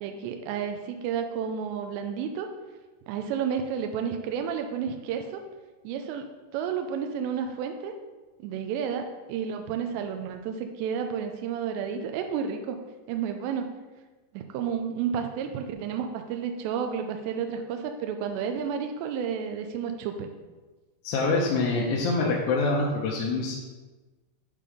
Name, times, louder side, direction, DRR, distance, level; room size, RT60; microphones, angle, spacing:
voice 1, 0.0-2.5 3.1-5.4 5.8-8.0 8.4-12.8 13.1-13.7 14.3-20.3, right 7 dB, 85° right, 5 dB, 2.5 m, -31 dB
voice 2, 21.0-23.6, left 3 dB, 80° left, -3 dB, 3.1 m, -25 dB
8.5 x 3.7 x 5.0 m, 1.2 s
omnidirectional pair, 5.4 m